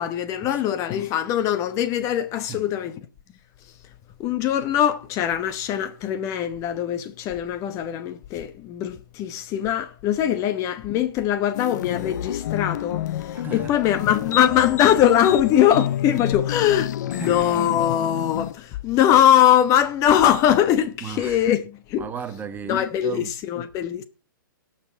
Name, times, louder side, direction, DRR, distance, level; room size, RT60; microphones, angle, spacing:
voice 1, 0.0-3.0 4.2-21.6 21.9-22.1 22.7-24.0, left 10 dB, 25° left, 1.0 m, -21 dB
sound 1, 11.5-18.5, left 11 dB, 55° left, 0.6 m, -29 dB
voice 2, 13.3-13.8 17.1-17.5 21.0-21.5 22.0-23.3, right 7 dB, 15° right, 1.2 m, -35 dB
17.5 x 6.0 x 4.5 m
hypercardioid pair, 130°, 11 cm